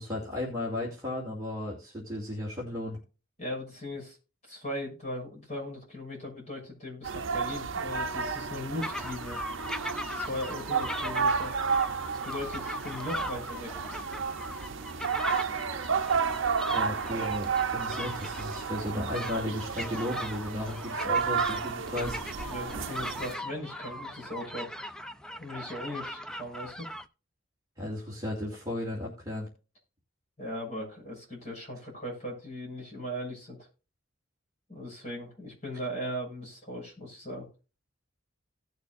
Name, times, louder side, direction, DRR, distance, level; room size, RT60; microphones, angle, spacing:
voice 1, 0.0-3.0 16.7-22.2 27.8-29.5, left 1 dB, 20° right, -4 dB, 2.5 m, -35 dB
voice 2, 3.4-4.2 4.5-9.4 10.1-11.5 12.1-13.7 22.5-24.8 25.4-26.9 30.4-33.6 34.7-37.5, left 1 dB, 35° left, -2 dB, 6.3 m, -38 dB
sound 1, 7.0-23.3, right 6 dB, 70° right, 0.7 m, -32 dB
sound 2, 8.8-27.1, equal, 5° left, 0.4 m, -39 dB
17.5 x 6.7 x 2.5 m, 0.33 s
head